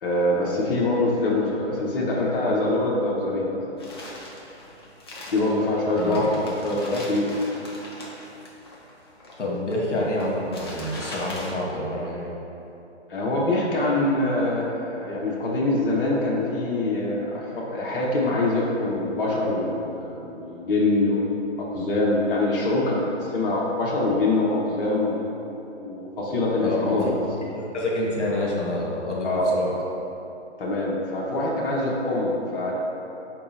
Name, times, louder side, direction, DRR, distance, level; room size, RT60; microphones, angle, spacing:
voice 1, 0.0-3.6 5.3-6.2 6.6-7.2 13.1-25.2 25.8-27.1 29.2-29.8 30.6-32.7, left 2 dB, 50° left, -4 dB, 0.9 m, -24 dB
voice 2, 1.9-2.6 5.9-6.3 6.9-7.0 9.4-12.3 26.6-27.1 27.5-29.7, left 1 dB, 85° left, -4 dB, 1.1 m, -28 dB
sound 1, 3.8-11.5, left 1 dB, 25° left, 0.4 m, -40 dB
4.6 x 2.9 x 4.0 m, 2.9 s
figure-of-eight pair, 135°, 35 cm